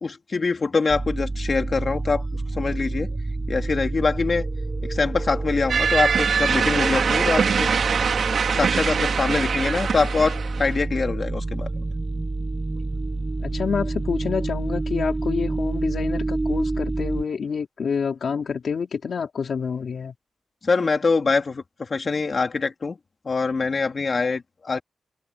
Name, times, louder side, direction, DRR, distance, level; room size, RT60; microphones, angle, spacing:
voice 1, 0.0-3.1 3.5-4.5 4.8-7.8 8.5-11.7 20.6-23.0 23.2-24.8, left 4 dB, 40° left, 3.2 m, -24 dB
sound 1, 0.9-17.2, right 2 dB, 25° right, 6.8 m, -28 dB
sound 2, 5.7-10.8, right 6 dB, 65° right, 4.9 m, -23 dB
voice 2, 13.4-20.1, left 6 dB, 65° left, 4.3 m, -28 dB
wide cardioid pair, 115°, 0 cm